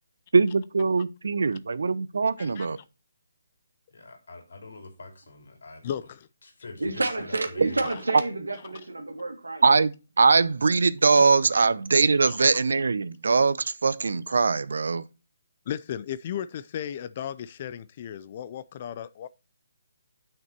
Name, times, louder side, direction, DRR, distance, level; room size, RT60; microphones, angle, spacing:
voice 1, 0.3-2.8 7.6-7.7 9.6-15.0, right 4 dB, 70° right, 0.7 m, -22 dB
voice 2, 3.9-5.9 6.4-7.9, left 3 dB, 70° left, 2.9 m, -45 dB
voice 3, 5.8-6.3 7.8-7.9 11.5-11.7 12.2-12.6 15.7-19.3, left 9 dB, 35° left, 0.4 m, -35 dB
voice 4, 6.8-9.6, right 2 dB, 85° right, 2.1 m, -30 dB
8.1 x 5.9 x 4.4 m
figure-of-eight pair, 150°, 0 cm